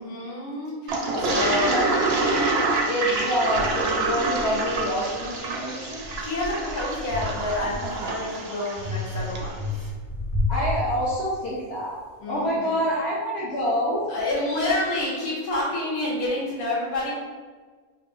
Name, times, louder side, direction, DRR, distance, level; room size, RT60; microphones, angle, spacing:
voice 1, 0.0-1.9 6.1-9.6 12.2-12.8 14.1-17.1, left 2 dB, 75° left, -8 dB, 1.9 m, -28 dB
Toilet flush, 0.9-9.5, right 3 dB, 60° right, 0.6 m, -27 dB
voice 2, 1.1-1.9 2.9-6.0 10.5-12.0 12.3-14.0, equal, 55° left, -8 dB, 0.9 m, -27 dB
sound 1, 2.7-2.8 3.5-5.4 5.8-8.2 8.8-11.5, left 2 dB, 20° left, 0.5 m, -32 dB
5.6 x 2.4 x 2.5 m, 1.4 s
omnidirectional pair, 1.6 m